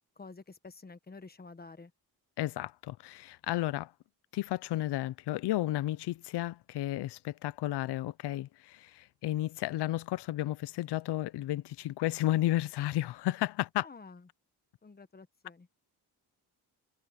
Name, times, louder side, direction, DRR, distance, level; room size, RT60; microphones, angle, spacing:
voice 1, 0.2-1.9 13.8-14.3 14.8-15.7, left 4 dB, 25° left, 1.4 m, -50 dB
voice 2, 2.4-3.9 4.3-13.9, left 15 dB, 90° left, 0.6 m, -32 dB
cardioid pair, 115°, 40 cm